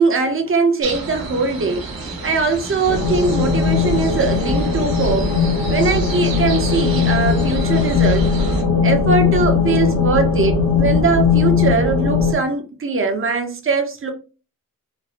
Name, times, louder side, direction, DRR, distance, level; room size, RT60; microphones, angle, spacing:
voice 1, 0.0-1.9 2.2-5.3 5.7-8.3 8.8-14.1, right 4 dB, 35° right, 0.6 m, -20 dB
sound 1, 0.8-8.6, right 3 dB, 80° right, 1.1 m, -31 dB
sound 2, 2.9-12.3, left 5 dB, 70° left, 0.9 m, -18 dB
4.1 x 2.0 x 2.4 m
wide cardioid pair, 135°, 35 cm